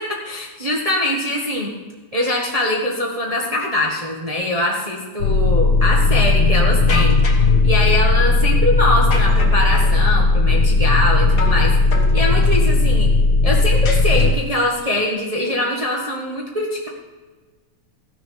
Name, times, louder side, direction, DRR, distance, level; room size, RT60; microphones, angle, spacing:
voice 1, 0.0-1.7 2.1-7.2 7.6-11.7 12.1-13.1 13.4-16.9, left 1 dB, 70° right, -2 dB, 0.3 m, -22 dB
sound 1, 5.2-14.3, left 3 dB, 85° left, 2.3 m, -16 dB
sound 2, 6.9-7.5 9.1-10.0 11.4-11.7 11.9-12.6 13.8-14.6, left 3 dB, 40° left, 1.7 m, -30 dB
14.5 x 6.5 x 5.8 m, 1.3 s
omnidirectional pair, 3.3 m